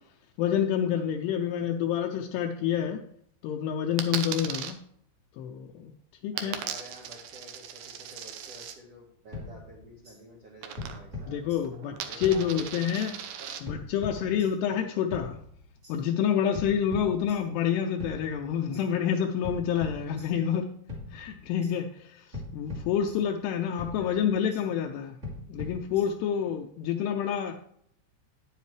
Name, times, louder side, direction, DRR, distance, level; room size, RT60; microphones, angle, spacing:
voice 1, 0.4-3.0 3.4-4.8 5.4-5.9 6.2-6.6 11.3-13.1 13.6-15.4 15.9-20.6 21.1-25.2 25.5-27.5, left 8 dB, 80° left, 3 dB, 2.6 m, -28 dB
Coin (dropping), 4.0-4.7 6.4-8.7 10.6-11.2 11.5-13.6, right 8 dB, 90° right, 1.8 m, -38 dB
voice 2, 6.3-11.4 12.0-12.7 13.4-13.5 14.2-14.5 16.5-16.8 24.0-24.2 26.3-26.5, right 1 dB, 55° right, -3 dB, 1.8 m, -50 dB
sound 1, 9.3-10.2 10.8-11.9 12.2-13.1 13.6-14.7 15.1-16.0 16.5-17.7 18.0-18.9 19.4-20.6 20.9-21.7 22.3-23.5 23.8-24.6 25.2-26.4, left 2 dB, 20° right, 1.9 m, -42 dB
10.0 x 9.4 x 3.2 m, 0.67 s
omnidirectional pair, 4.9 m